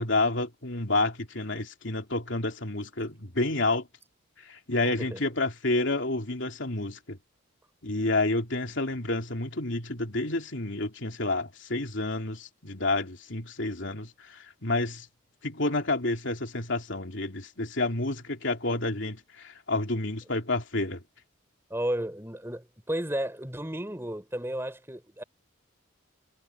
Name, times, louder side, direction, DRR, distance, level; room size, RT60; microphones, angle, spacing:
voice 1, 0.0-3.9 4.4-7.2 7.8-15.1 15.4-21.0, left 2 dB, 60° left, 3.2 m, -29 dB
voice 2, 4.8-5.2 21.7-25.2, right 1 dB, 10° right, 3.6 m, -33 dB
head